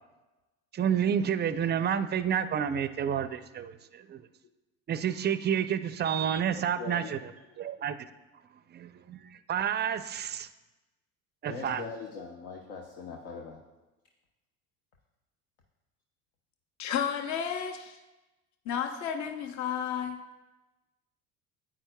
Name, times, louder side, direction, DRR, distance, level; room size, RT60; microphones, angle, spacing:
voice 1, 0.7-4.2 4.9-7.2 7.6-8.0 8.7-9.2 9.5-10.5 11.4-11.8, right 8 dB, 25° right, 0.4 m, -29 dB
voice 2, 6.8-7.6 11.4-13.6, left 4 dB, 75° left, 0.9 m, -41 dB
voice 3, 16.8-18.0 18.7-20.2, left 8 dB, 45° left, 0.7 m, -32 dB
9.6 x 8.7 x 2.2 m
hypercardioid pair, 70°, 40 cm